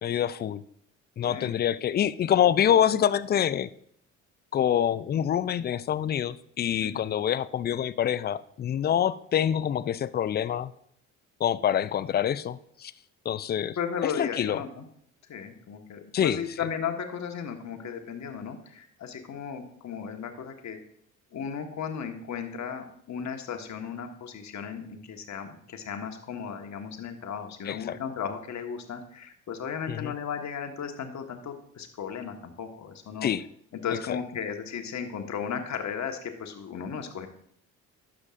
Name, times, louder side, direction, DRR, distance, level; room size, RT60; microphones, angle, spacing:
voice 1, 0.0-0.6 1.2-3.7 4.5-10.7 11.4-12.9 13.3-13.8 14.0-14.6 16.1-16.4 27.7-28.0 29.9-30.1 33.2-33.4 34.1-34.2, left 10 dB, 25° left, 17 dB, 0.4 m, -26 dB
voice 2, 13.8-14.9 15.3-20.8 21.3-33.3 33.7-37.3, left 7 dB, 40° left, 4 dB, 1.5 m, -35 dB
12.0 x 7.5 x 2.6 m, 0.68 s
hypercardioid pair, 55°, 41 cm